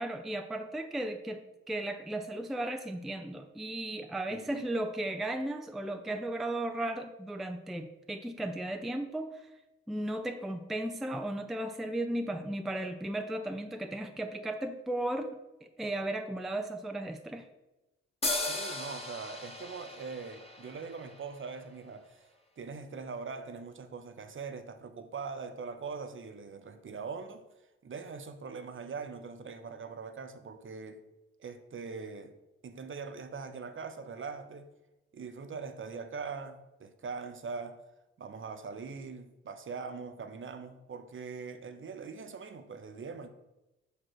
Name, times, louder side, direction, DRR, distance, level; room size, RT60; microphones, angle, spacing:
voice 1, 0.0-9.5 9.9-15.3 15.6-17.5, right 1 dB, ahead, 0.5 m, -35 dB
sound 1, 18.2-21.8, left 2 dB, 15° left, 1.3 m, -37 dB
voice 2, 18.4-22.3 22.6-27.4 27.8-31.0 31.4-32.3 32.6-34.7 35.1-37.8 38.2-43.3, right 5 dB, 35° right, 0.8 m, -42 dB
6.0 x 5.0 x 4.5 m
hypercardioid pair, 40°, 35 cm